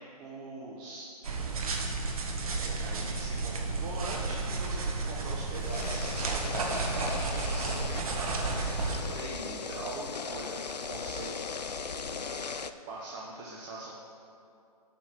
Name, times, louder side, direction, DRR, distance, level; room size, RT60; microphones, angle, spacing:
voice 1, 0.0-1.6 2.4-11.7 12.9-13.9, right 2 dB, 30° right, -4 dB, 1.1 m, -43 dB
sound 1, 1.2-9.0, right 3 dB, 65° right, 1.3 m, -32 dB
sound 2, 5.5-12.7, left 5 dB, 90° left, 0.5 m, -38 dB
7.2 x 5.7 x 7.2 m, 2.5 s
figure-of-eight pair, 130°, 20 cm